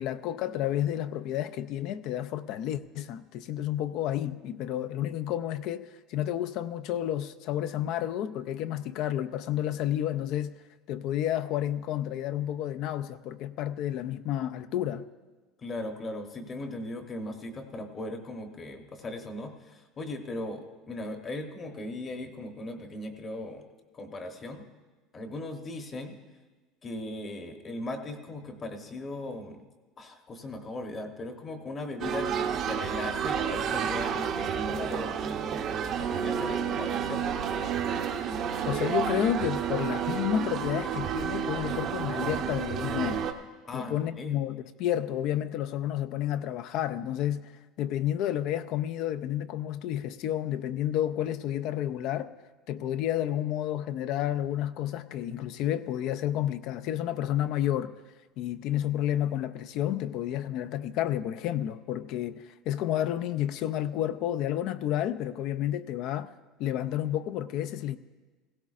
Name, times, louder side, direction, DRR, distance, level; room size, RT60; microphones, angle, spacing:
voice 1, 0.0-10.5 10.9-15.1 38.7-43.3 43.7-47.5 47.8-52.3 52.7-57.9 58.4-66.3 66.6-68.0, left 11 dB, 50° left, 0.4 m, -30 dB
voice 2, 15.6-23.6 23.9-24.6 25.1-26.1 26.8-29.6 30.0-37.4 43.6-44.4, left 2 dB, 20° left, 0.9 m, -38 dB
sound 1, 32.0-43.3, right 7 dB, 35° right, 0.7 m, -30 dB
17.0 x 16.5 x 2.5 m
cardioid pair, 170°, 0 cm